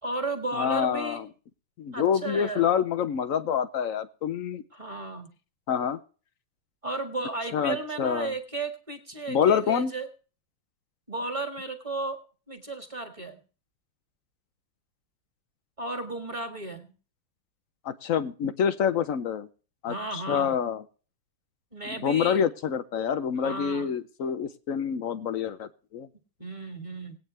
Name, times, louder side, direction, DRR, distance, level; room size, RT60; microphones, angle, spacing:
voice 1, 0.0-1.2 1.9-2.7 4.7-5.3 6.8-10.1 11.1-12.2 12.5-13.4 15.8-16.9 19.9-20.5 21.7-22.4 23.4-23.9 26.4-27.2, right 2 dB, 15° right, 5 dB, 1.6 m, -34 dB
voice 2, 0.5-1.3 1.8-4.6 5.7-6.0 7.5-8.3 9.3-9.9 17.8-19.5 19.8-20.8 21.9-26.1, left 8 dB, 70° left, 12 dB, 0.8 m, -27 dB
19.5 x 9.0 x 3.2 m, 0.38 s
omnidirectional pair, 2.2 m